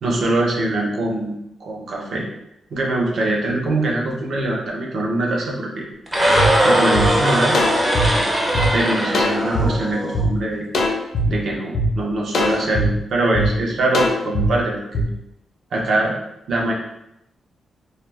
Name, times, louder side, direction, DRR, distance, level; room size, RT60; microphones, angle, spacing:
voice 1, 0.0-2.2 2.7-5.9 6.6-7.6 8.7-10.6 11.3-15.1 15.7-16.1 16.5-16.7, right 2 dB, 60° right, -2 dB, 0.6 m, -23 dB
sound 1, 6.1-10.2, right 1 dB, 10° right, 0.5 m, -19 dB
sound 2, 6.4-6.5 6.9-7.1 7.5-8.7 9.1-9.7 10.1-10.3 10.7-11.3 11.7-11.9 12.3-12.9 13.3-13.5 13.9-14.5 14.9-15.0, equal, 65° left, 0.4 m, -20 dB
2.2 x 2.1 x 3.2 m, 0.82 s
wide cardioid pair, 150°, 0 cm